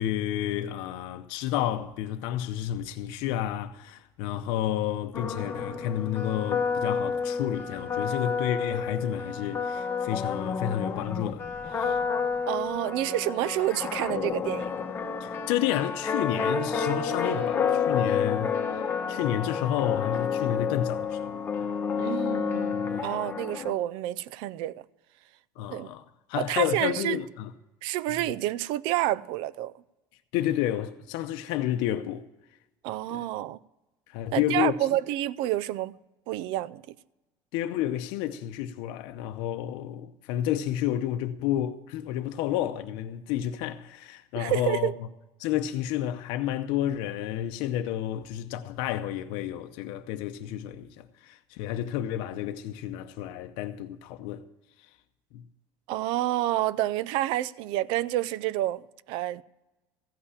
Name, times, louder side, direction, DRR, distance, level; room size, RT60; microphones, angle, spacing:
voice 1, 0.0-12.0 15.2-18.5 19.1-21.7 22.6-23.3 25.6-27.5 28.3-28.4 30.3-32.3 33.1-33.3 34.1-34.7 37.5-44.9 45.4-54.4 54.8-54.9 55.3-55.4, left 11 dB, 80° left, 0.7 m, -30 dB
sound 1, 5.1-23.7, left 6 dB, 25° left, 1.0 m, -30 dB
voice 2, 12.5-14.7 22.0-24.7 25.7-25.9 26.4-27.2 27.8-29.7 32.8-33.6 34.3-36.0 36.3-36.9 44.4-44.9 55.9-59.4, right 14 dB, 75° right, 0.4 m, -29 dB
15.0 x 5.6 x 9.9 m
cardioid pair, 155°, 8 cm